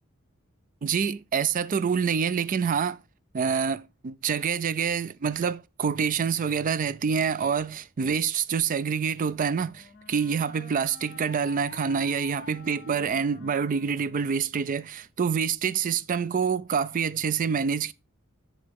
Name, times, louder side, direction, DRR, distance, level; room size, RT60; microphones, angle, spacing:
voice 1, 0.8-3.0 3.3-17.9, right 6 dB, 40° right, 0.4 m, -27 dB
Wind instrument woodwind instrument, 9.0-14.8, left 5 dB, 45° left, 0.6 m, -48 dB
7.5 x 6.8 x 3.4 m
head